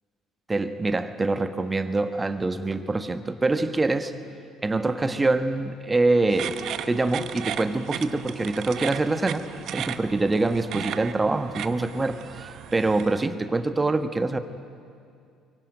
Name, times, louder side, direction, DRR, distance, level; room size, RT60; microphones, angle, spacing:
voice 1, 0.5-4.1 4.6-6.6 6.9-9.5 9.7-14.4, right 2 dB, 20° right, 10 dB, 1.5 m, -25 dB
sound 1, 6.3-13.2, right 9 dB, 55° right, 1.0 m, -36 dB
23.5 x 23.0 x 9.2 m, 2.4 s
figure-of-eight pair, 55°, 0 cm